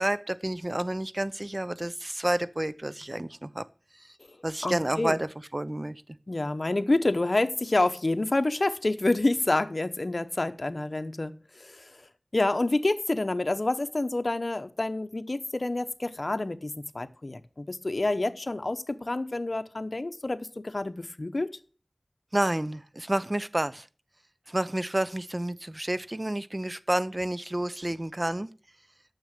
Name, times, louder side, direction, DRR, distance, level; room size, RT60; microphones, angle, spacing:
voice 1, 0.0-3.6 4.4-6.0 22.3-23.9 24.5-28.5, right 1 dB, 35° right, 0.6 m, -30 dB
voice 2, 4.3-5.2 6.3-21.5, left 2 dB, 65° left, 0.9 m, -28 dB
9.3 x 6.8 x 7.6 m
wide cardioid pair, 40°, 0 cm